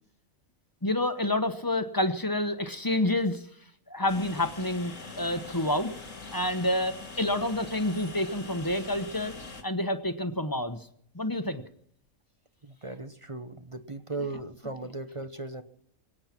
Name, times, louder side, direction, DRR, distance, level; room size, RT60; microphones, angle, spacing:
voice 1, 0.8-3.4 3.9-4.9 5.2-5.9 6.3-9.3 9.6-10.8 11.1-11.6, left 1 dB, 15° left, 9 dB, 1.1 m, -28 dB
Train, 4.1-9.6, left 3 dB, 70° left, 2.5 m, -43 dB
voice 2, 12.6-15.6, right 2 dB, 30° right, 9 dB, 0.8 m, -37 dB
25.0 x 8.9 x 6.1 m, 0.65 s
omnidirectional pair, 1.4 m